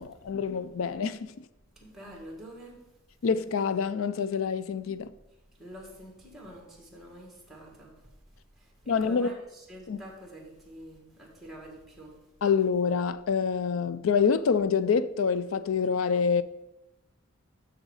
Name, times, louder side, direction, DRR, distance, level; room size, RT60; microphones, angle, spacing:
voice 1, 0.0-1.4 3.2-5.1 8.9-9.3 9.9-10.0 12.4-16.4, left 6 dB, 70° left, 0.4 m, -26 dB
voice 2, 1.8-2.8 5.6-7.9 8.8-12.1, equal, ahead, 1.8 m, -46 dB
6.4 x 6.3 x 4.8 m
head